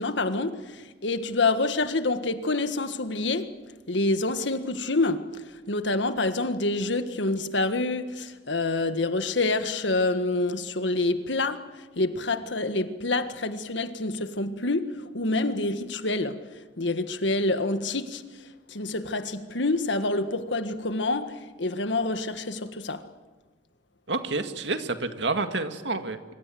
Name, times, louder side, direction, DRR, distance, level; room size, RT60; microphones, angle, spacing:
voice 1, 0.0-23.1, left 2 dB, 90° left, 1.7 m, -27 dB
voice 2, 24.1-26.3, right 3 dB, 85° right, 2.0 m, -29 dB
25.5 x 25.0 x 7.8 m
head